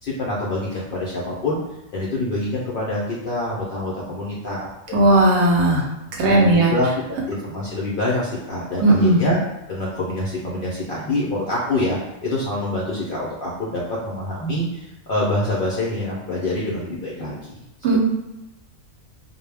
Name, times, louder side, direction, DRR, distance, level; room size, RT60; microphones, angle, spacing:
voice 1, 0.0-1.6 1.9-4.7 6.2-9.4 9.7-17.6, left 1 dB, 65° left, -5 dB, 0.5 m, -26 dB
voice 2, 4.9-5.8 6.2-6.7 8.8-9.2 17.8-18.0, right 2 dB, 65° right, -2 dB, 0.8 m, -16 dB
2.2 x 2.0 x 3.2 m, 0.98 s
omnidirectional pair, 1.3 m